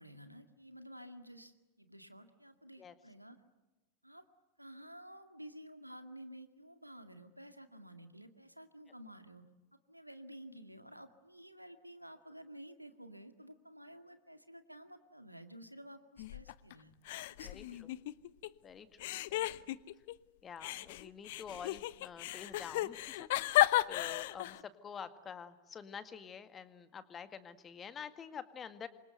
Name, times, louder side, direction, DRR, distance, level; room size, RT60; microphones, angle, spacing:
voice 1, 0.0-3.4 4.0-4.2 4.6-9.4 9.9-16.9 17.4-17.8 24.1-24.2, equal, 90° right, 8 dB, 2.1 m, -52 dB
sound 1, 16.2-16.7 17.1-18.5 19.0-20.1 20.6-24.6, left 16 dB, 50° left, 0.8 m, -34 dB
voice 2, 17.4-17.9 18.6-19.5 20.4-23.3 23.9-28.9, left 7 dB, 25° left, 11 dB, 1.9 m, -48 dB
28.0 x 25.0 x 7.9 m, 1.1 s
figure-of-eight pair, 90°, 0 cm